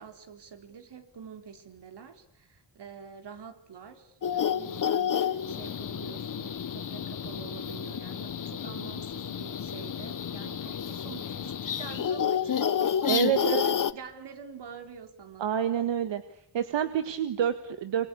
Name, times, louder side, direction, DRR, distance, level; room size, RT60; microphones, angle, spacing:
voice 1, 0.0-13.6 13.9-15.5, right 6 dB, 65° right, 7 dB, 3.9 m, -46 dB
sound 1, 4.2-13.9, left 8 dB, 45° left, 1.2 m, -30 dB
voice 2, 13.1-13.7 15.4-16.2 16.5-18.1, right 9 dB, 85° right, 10 dB, 1.6 m, -28 dB
26.5 x 25.5 x 8.5 m, 0.70 s
cardioid pair, 100°, 43 cm